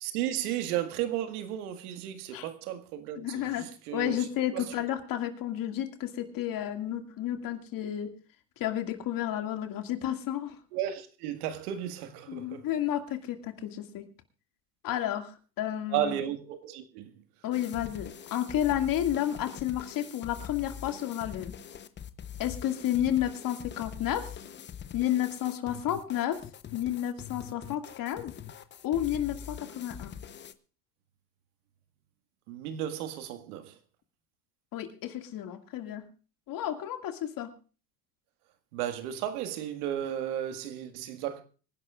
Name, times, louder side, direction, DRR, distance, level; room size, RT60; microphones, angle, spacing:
voice 1, 0.0-4.2 4.5-4.6 10.7-12.7 15.9-17.1 32.5-33.7 38.7-41.4, right 11 dB, 70° right, 1.9 m, -34 dB
voice 2, 3.2-8.1 8.6-10.6 12.3-14.1 14.8-16.2 17.4-21.6 22.4-24.4 24.9-26.4 26.7-28.3 28.8-30.1 34.7-36.1 36.5-37.5, left 11 dB, 45° left, 2.2 m, -31 dB
sound 1, 17.5-30.5, left 9 dB, 25° left, 0.8 m, -44 dB
25.5 x 11.0 x 2.5 m
hypercardioid pair, 100°, 47 cm